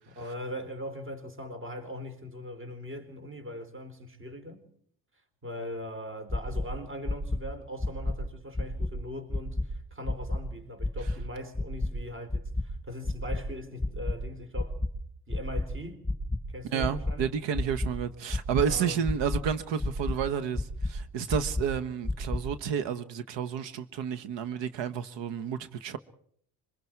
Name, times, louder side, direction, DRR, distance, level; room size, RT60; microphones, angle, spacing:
voice 1, 0.1-4.6 5.4-14.8 15.3-16.1 16.5-17.3 18.6-19.1, left 1 dB, 30° right, 4.1 m, -40 dB
sound 1, 6.3-6.6 7.0-7.4 7.8-8.1 8.5-8.9 9.3-9.6 10.0-10.4 10.8-11.1 11.5-11.9 12.3-12.6 13.0-13.4 13.8-14.1 14.5-14.9 15.3-15.6 16.0-16.4 16.8-17.1 17.5-17.9 18.3-18.7 19.0-19.4 19.8-20.2 20.5-20.9 21.3-21.6 22.0-22.4, left 2 dB, ahead, 4.9 m, -29 dB
voice 2, 16.7-26.0, right 8 dB, 80° right, 1.4 m, -31 dB
26.5 x 24.0 x 4.7 m
cardioid pair, 140°, 43 cm